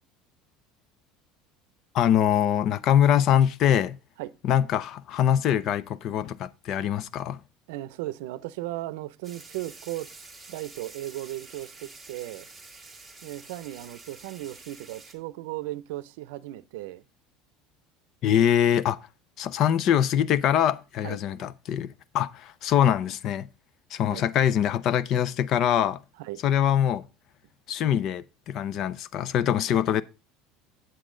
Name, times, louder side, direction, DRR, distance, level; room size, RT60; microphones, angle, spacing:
voice 1, 1.9-4.0 4.4-7.4 18.2-19.0 19.4-23.5 23.9-26.0 26.4-27.0 27.7-30.0, left 10 dB, 40° left, 0.4 m, -23 dB
voice 2, 7.7-10.1 10.5-12.5 13.2-17.0 18.4-18.6 21.0-21.4 24.1-24.2 26.2-26.4, right 16 dB, 90° right, 0.6 m, -36 dB
sound 1, 9.2-15.1, right 3 dB, 5° right, 1.6 m, -48 dB
8.3 x 7.6 x 3.8 m
cardioid pair, 165°, 0 cm